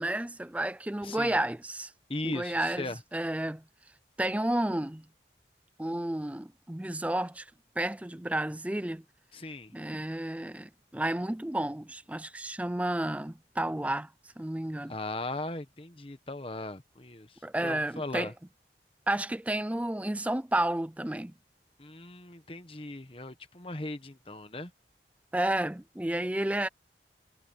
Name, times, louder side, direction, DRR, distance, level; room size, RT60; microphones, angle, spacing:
voice 1, 0.0-1.9 2.2-2.9 3.1-3.6 4.2-5.1 5.8-7.5 7.8-9.0 9.7-14.1 14.4-14.9 17.4-18.3 19.1-21.3 25.3-26.7, right 1 dB, 10° right, 0.4 m, -31 dB
voice 2, 1.0-1.4 2.1-3.0 9.3-9.7 14.9-18.3 21.8-24.7, left 2 dB, 30° left, 1.2 m, -38 dB
head